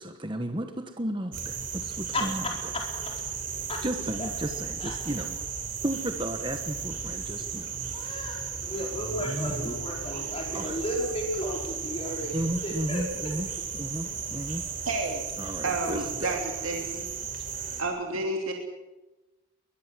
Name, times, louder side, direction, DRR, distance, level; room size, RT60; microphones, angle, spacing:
voice 1, 0.0-2.5 3.8-5.3 5.8-8.6 9.2-9.8 10.5-10.8 12.3-13.5 13.7-14.7 15.4-16.4, right 1 dB, 25° right, 6 dB, 1.3 m, -34 dB
sound 1, 1.3-17.8, right 6 dB, 40° right, 3.5 m, -35 dB
voice 2, 2.1-3.2 3.7-3.8 4.2-4.3 4.8-5.0 7.9-13.5, left 1 dB, 30° left, 0 dB, 4.5 m, -34 dB
voice 3, 14.8-15.2 15.6-17.1 17.8-18.5, right 2 dB, 80° right, 2 dB, 3.1 m, -30 dB
22.5 x 21.0 x 7.7 m, 1.1 s
head